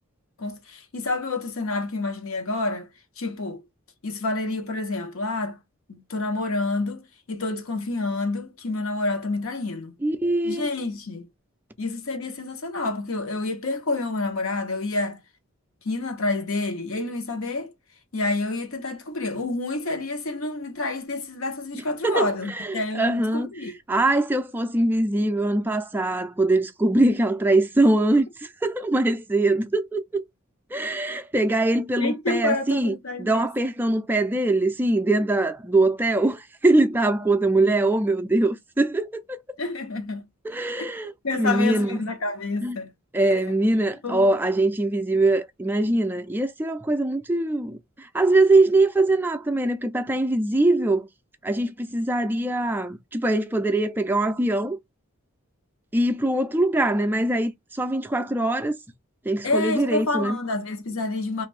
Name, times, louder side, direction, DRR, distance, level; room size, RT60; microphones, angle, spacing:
voice 1, 0.4-2.9 3.2-3.6 4.0-5.6 5.9-10.0 10.4-11.3 11.8-15.2 15.8-17.7 18.1-23.7 32.0-33.5 39.6-40.3 40.8-40.9 41.2-42.9 43.3-43.4 44.0-44.4 59.4-61.5, left 2 dB, 75° left, 0.9 m, -28 dB
voice 2, 10.0-10.7 21.7-23.5 23.9-30.2 30.7-39.2 40.4-42.0 42.6-42.8 43.1-51.1 51.4-54.8 55.9-58.8 59.2-60.4, right 2 dB, 10° right, 0.3 m, -22 dB
2.6 x 2.5 x 3.1 m
head